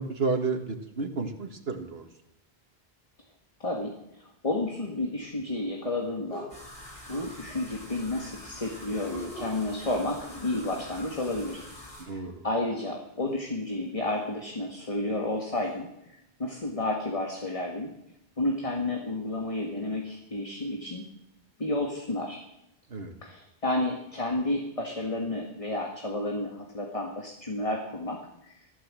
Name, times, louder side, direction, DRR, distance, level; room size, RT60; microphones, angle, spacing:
voice 1, 0.0-2.1 12.0-12.5 22.9-23.2, right 4 dB, 75° right, 4 dB, 1.9 m, -31 dB
voice 2, 3.6-6.5 7.1-11.6 12.1-15.9 16.4-17.9 18.4-21.1 21.6-22.4 23.2-28.5, left 2 dB, 35° left, 1 dB, 1.8 m, -31 dB
Male Fight Grunts, 5.2-5.4 6.3-6.6 7.1-7.7 9.1-9.6 10.3-10.9 11.4-11.7 13.3-13.4 14.1-14.2 14.7-14.9 15.6-15.8 16.5-16.6, equal, 85° left, 7.5 m, -44 dB
sound 1, 6.5-12.0, left 1 dB, 65° left, 4.8 m, -46 dB
15.0 x 13.0 x 7.6 m, 0.85 s
omnidirectional pair, 1.0 m